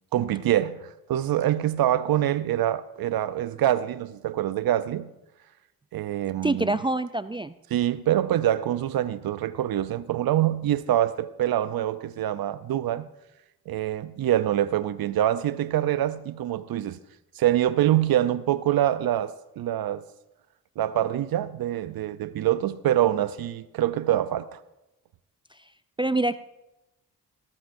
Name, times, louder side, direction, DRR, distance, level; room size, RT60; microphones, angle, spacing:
voice 1, 0.1-5.1 5.9-6.8 7.7-13.1 13.7-17.0 17.4-20.0 20.8-24.6, right 12 dB, 65° right, 0.6 m, -25 dB
voice 2, 6.4-7.5 26.0-26.4, right 2 dB, 15° right, 0.4 m, -25 dB
18.5 x 13.0 x 2.6 m
supercardioid pair, 60°, 38 cm